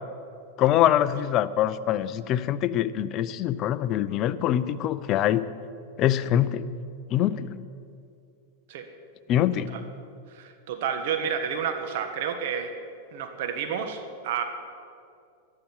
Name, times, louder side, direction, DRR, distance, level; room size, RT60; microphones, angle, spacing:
voice 1, 0.6-5.4 6.0-6.7 7.1-7.5 9.3-9.7, left 11 dB, 35° left, 13 dB, 0.6 m, -24 dB
voice 2, 10.3-12.7 13.1-14.4, right 7 dB, 65° right, 7 dB, 1.3 m, -30 dB
12.5 x 12.0 x 7.3 m, 2.4 s
supercardioid pair, 145°, 0 cm